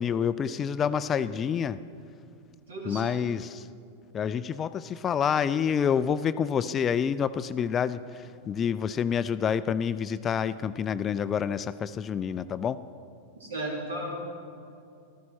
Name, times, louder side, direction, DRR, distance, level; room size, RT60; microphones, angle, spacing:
voice 1, 0.0-1.8 2.9-3.7 4.1-12.8, left 7 dB, 25° left, 15 dB, 0.3 m, -28 dB
voice 2, 2.7-3.0 13.4-14.1, right 1 dB, 70° right, -2 dB, 3.2 m, -34 dB
15.0 x 13.5 x 4.4 m, 2.4 s
figure-of-eight pair, 90°, 0 cm